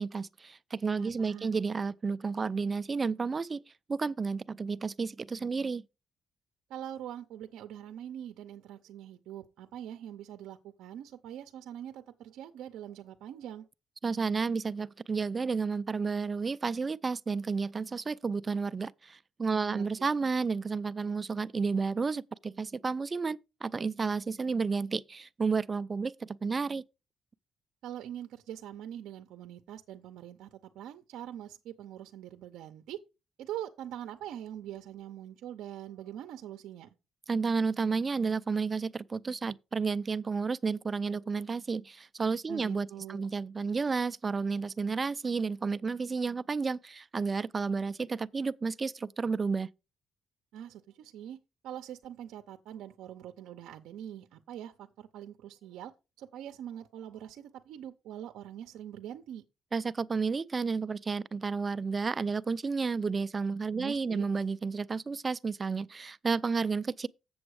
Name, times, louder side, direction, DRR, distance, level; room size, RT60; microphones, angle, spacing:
voice 1, 0.0-3.6 3.9-5.8 14.0-26.8 37.3-49.7 59.7-67.1, right 4 dB, 30° right, 0.4 m, -31 dB
voice 2, 1.0-1.6 6.7-13.7 19.6-19.9 27.8-33.0 33.4-36.9 42.5-43.3 50.5-55.9 56.2-59.4 63.7-64.2, right 11 dB, 85° right, 0.6 m, -43 dB
7.8 x 7.1 x 4.7 m
cardioid pair, 90°, 0 cm